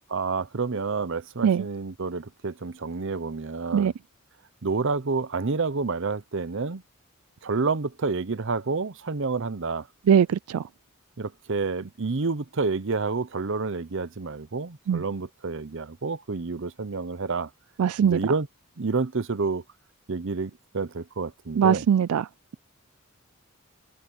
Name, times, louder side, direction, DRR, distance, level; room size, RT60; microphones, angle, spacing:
voice 1, 0.1-3.9 4.6-6.8 7.4-9.9 11.2-17.5 18.0-18.5 18.8-19.6 20.1-21.8, right 4 dB, 55° right, 0.7 m, -29 dB
voice 2, 10.1-10.6 14.9-15.0 17.8-18.3 21.6-22.3, right 8 dB, 85° right, 0.4 m, -21 dB
head